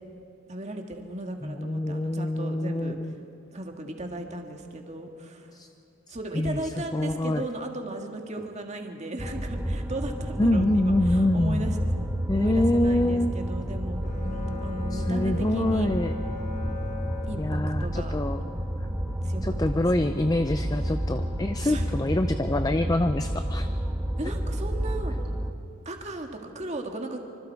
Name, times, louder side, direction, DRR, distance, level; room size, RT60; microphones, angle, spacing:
voice 1, 0.5-3.0 3.5-5.6 6.1-11.8 12.3-15.9 17.3-18.1 19.2-19.6 21.6-21.9 24.2-25.1 25.9-27.2, right 1 dB, 30° right, 3 dB, 1.9 m, -36 dB
voice 2, 1.4-3.2 5.5-5.7 6.3-7.4 10.4-11.7 12.3-13.4 14.9-16.1 17.4-18.4 19.4-23.7, left 1 dB, 15° left, 9 dB, 0.5 m, -26 dB
sound 1, 9.2-25.5, equal, 10° right, 1.3 m, -30 dB
Bowed string instrument, 14.0-18.1, left 4 dB, 40° left, 3.0 m, -39 dB
25.5 x 25.5 x 4.7 m, 2.5 s
head